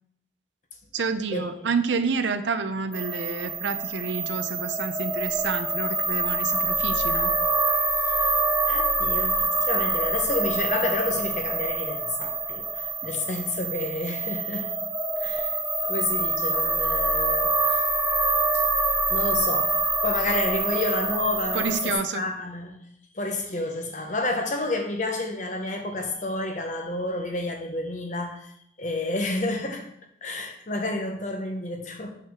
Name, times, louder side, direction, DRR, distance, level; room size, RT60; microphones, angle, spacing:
voice 1, 0.9-7.3 21.5-22.2, right 5 dB, 75° right, 10 dB, 0.6 m, -29 dB
sound 1, 2.9-21.9, right 3 dB, 10° right, 0.6 m, -26 dB
voice 2, 8.1-8.4 8.6-14.7 15.2-15.6 15.9-17.8 18.5-18.6 19.1-19.7 20.0-22.8 23.1-28.5 28.8-29.9 30.2-32.1, left 2 dB, 40° left, 4 dB, 1.0 m, -30 dB
7.4 x 5.5 x 3.6 m, 0.72 s
head